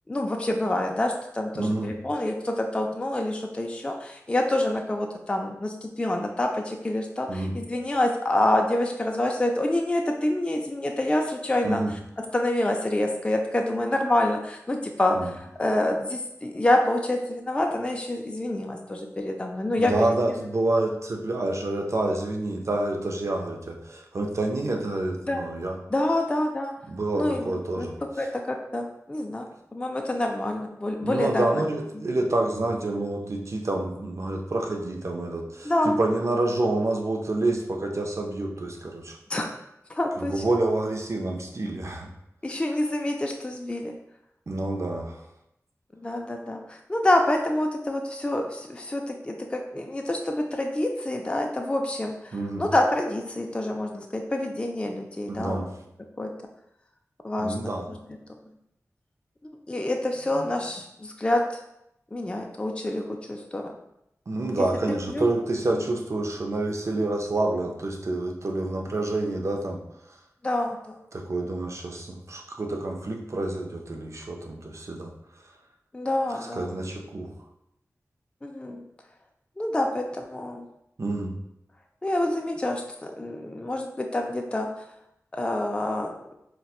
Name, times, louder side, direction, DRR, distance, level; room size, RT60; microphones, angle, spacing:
voice 1, 0.1-12.0 12.3-20.2 25.3-25.4 25.9-26.7 27.2-27.9 28.2-31.6 31.9-32.0 35.6-36.0 39.3-39.5 39.9-40.4 42.4-43.9 46.0-55.6 56.2-56.3 57.2-58.0 59.7-61.6 62.1-63.6 64.6-64.7 65.1-65.2 65.8-65.9 70.4-71.0 75.9-76.7 78.4-78.8 79.6-80.7 82.0-84.7 85.3-86.1, left 1 dB, 20° left, 2 dB, 0.3 m, -27 dB
voice 2, 1.5-1.9 7.3-7.6 11.6-11.9 15.2-15.3 19.8-25.8 26.9-28.0 31.0-39.2 40.2-42.1 44.5-45.2 52.3-52.6 55.3-55.7 57.4-57.9 64.3-69.8 71.1-75.1 76.4-77.3 81.0-81.3, right 2 dB, 55° right, 2 dB, 0.5 m, -28 dB
4.1 x 2.2 x 2.3 m, 0.81 s
wide cardioid pair, 60°, 6 cm